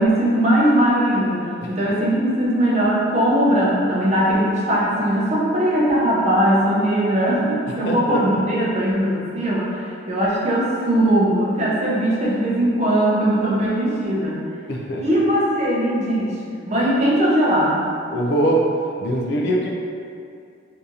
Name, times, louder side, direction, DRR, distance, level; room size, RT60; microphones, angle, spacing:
voice 1, 0.0-14.4 15.0-16.4 16.7-17.9, right 1 dB, 35° right, -6 dB, 0.6 m, -19 dB
voice 2, 7.8-8.2 14.7-15.0 18.1-18.7 19.0-19.7, right 1 dB, 55° left, -1 dB, 0.4 m, -22 dB
2.8 x 2.6 x 3.6 m, 2.4 s
head